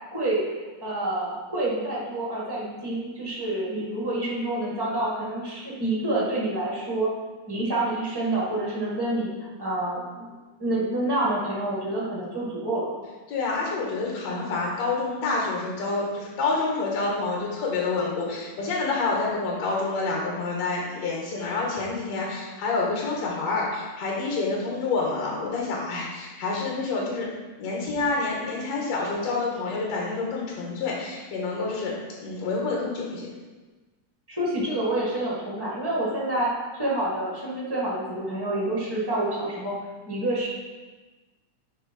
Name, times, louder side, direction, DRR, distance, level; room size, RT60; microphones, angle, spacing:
voice 1, 0.8-7.1 7.5-10.3 10.6-12.9 34.3-36.5 36.7-39.7 40.0-40.5, right 1 dB, 10° right, -6 dB, 1.1 m, -28 dB
voice 2, 13.3-27.3 27.6-32.0 32.2-33.3, left 3 dB, 60° left, -3 dB, 2.6 m, -28 dB
8.3 x 3.7 x 5.3 m, 1.2 s
omnidirectional pair, 3.5 m